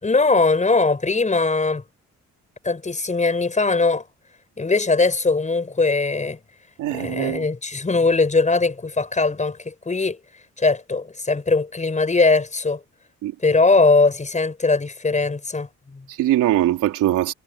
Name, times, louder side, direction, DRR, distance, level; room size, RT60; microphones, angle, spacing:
voice 1, 0.0-1.8 2.6-4.0 4.6-6.4 6.9-10.2 10.6-12.8 13.4-16.0, left 3 dB, 25° left, 5.9 m, -20 dB
voice 2, 6.8-7.5 13.2-13.3 16.1-17.3, right 14 dB, 90° right, 3.7 m, -21 dB
cardioid pair, 90°, 30 cm